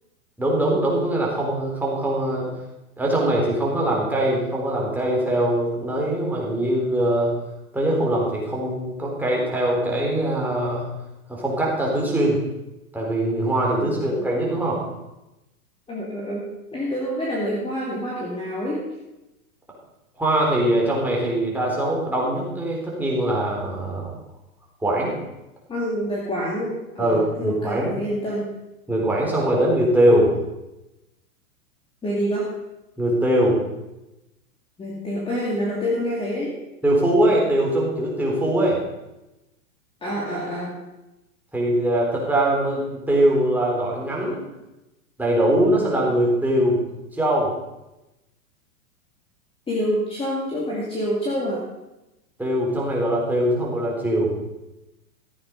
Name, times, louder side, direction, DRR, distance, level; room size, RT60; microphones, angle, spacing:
voice 1, 0.4-2.5 3.0-7.3 7.7-10.8 11.3-12.4 12.9-14.8 20.2-24.1 24.8-25.1 27.0-27.9 28.9-30.3 33.0-33.6 36.8-38.8 41.5-42.8 43.1-44.4 45.2-46.8 47.1-47.5 52.4-54.3, right 1 dB, 5° right, -3 dB, 3.9 m, -22 dB
voice 2, 13.8-14.2 15.9-18.9 25.7-28.5 32.0-32.5 34.8-36.6 40.0-40.8 49.7-51.7, equal, 10° left, -4 dB, 2.4 m, -27 dB
15.0 x 8.5 x 5.3 m, 0.96 s
hypercardioid pair, 135°, 44 cm